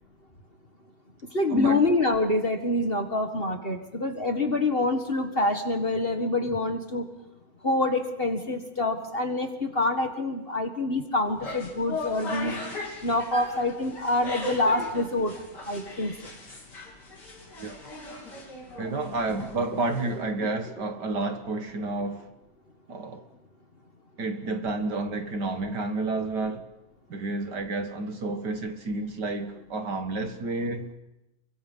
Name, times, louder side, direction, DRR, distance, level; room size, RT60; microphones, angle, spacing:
voice 1, 1.3-7.0 7.6-12.6 13.0-15.3 15.7-16.1, left 2 dB, 30° left, 1.8 m, -26 dB
sound 1, 11.3-20.3, left 2 dB, 55° left, 4.3 m, -38 dB
voice 2, 18.8-22.3 22.9-23.2 24.2-26.7 27.1-30.9, right 3 dB, 55° right, 2.3 m, -30 dB
30.0 x 24.0 x 5.5 m
omnidirectional pair, 2.2 m